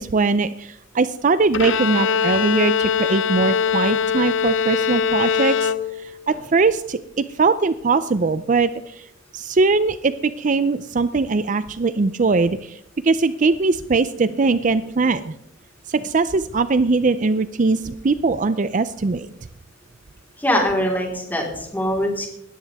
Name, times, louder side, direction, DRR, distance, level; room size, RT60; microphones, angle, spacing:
voice 1, 0.0-5.7 6.0-9.1 9.3-15.3 15.9-19.3, right 3 dB, 40° right, 13 dB, 0.5 m, -21 dB
Bowed string instrument, 1.5-6.3, left 6 dB, 80° left, 0.7 m, -22 dB
voice 2, 20.4-22.3, equal, 10° left, -1 dB, 4.1 m, -22 dB
19.5 x 14.0 x 3.5 m, 0.77 s
head